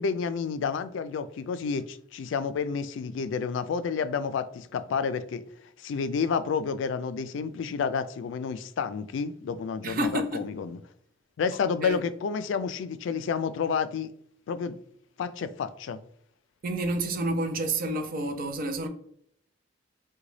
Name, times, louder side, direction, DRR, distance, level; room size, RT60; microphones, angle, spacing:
voice 1, 0.0-5.4 5.8-10.8 11.4-14.1 14.5-14.8 15.2-16.0, left 6 dB, 70° left, 0.3 m, -30 dB
voice 2, 9.8-10.5 11.8-12.0 16.6-18.9, right 1 dB, 50° right, 0.5 m, -29 dB
3.8 x 2.2 x 3.1 m
head